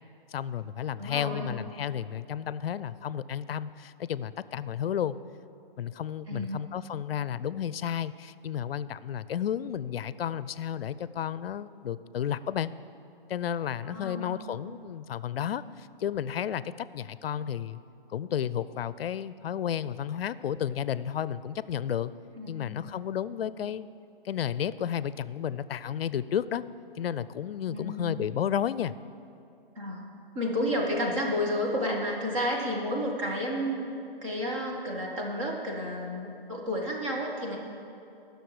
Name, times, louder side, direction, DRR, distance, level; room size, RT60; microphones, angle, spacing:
voice 1, 0.3-5.2 5.8-12.7 13.3-17.8 18.1-22.1 22.5-23.8 24.2-26.6 27.0-28.9, left 9 dB, 80° left, 17 dB, 0.5 m, -32 dB
voice 2, 1.0-1.5 6.3-6.7 13.8-14.4 22.4-22.7 27.7-28.2 29.8-30.1 30.3-33.9 34.2-37.6, equal, 35° right, -1 dB, 1.7 m, -31 dB
19.0 x 6.6 x 4.8 m, 2.6 s
hypercardioid pair, 165°, 29 cm